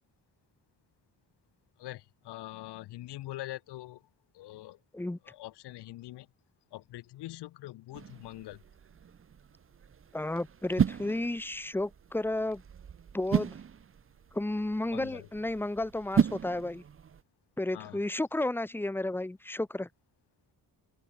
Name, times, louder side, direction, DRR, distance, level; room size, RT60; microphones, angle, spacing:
voice 1, 1.8-4.0 4.3-4.8 5.3-6.3 6.7-8.6 14.9-15.3 17.7-18.0, left 16 dB, 80° left, 0.5 m, -43 dB
sound 1, 7.9-17.2, right 7 dB, 35° right, 0.7 m, -35 dB
voice 2, 10.1-12.6 13.1-13.5 14.3-16.8 17.6-19.9, left 1 dB, 5° left, 0.6 m, -32 dB
wide cardioid pair, 130°, 40 cm